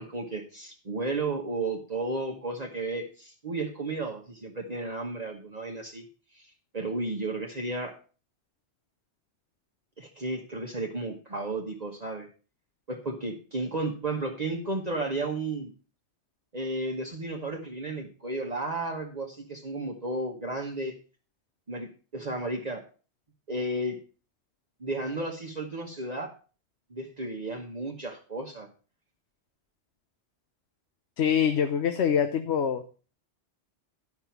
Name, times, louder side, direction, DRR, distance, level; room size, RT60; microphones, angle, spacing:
voice 1, 0.0-6.0 6.3-7.9 10.0-12.3 12.9-15.7 16.5-21.0 21.7-22.8 23.5-24.0 24.8-26.3 26.9-28.7, right 2 dB, 40° right, 0 dB, 1.3 m, -33 dB
voice 2, 31.2-32.8, left 8 dB, 75° left, 8 dB, 1.1 m, -24 dB
11.0 x 6.0 x 5.8 m, 0.37 s
omnidirectional pair, 1.1 m